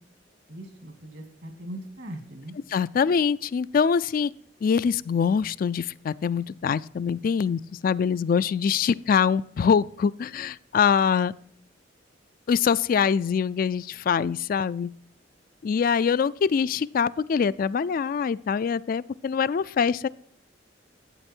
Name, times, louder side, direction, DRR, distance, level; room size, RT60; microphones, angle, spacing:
voice 1, 0.5-2.6, right 1 dB, 65° right, 6 dB, 2.3 m, -40 dB
voice 2, 2.7-4.3 4.6-11.3 12.5-14.9 15.6-20.1, left 6 dB, 50° left, 16 dB, 0.3 m, -24 dB
12.0 x 8.4 x 4.4 m, 0.65 s
head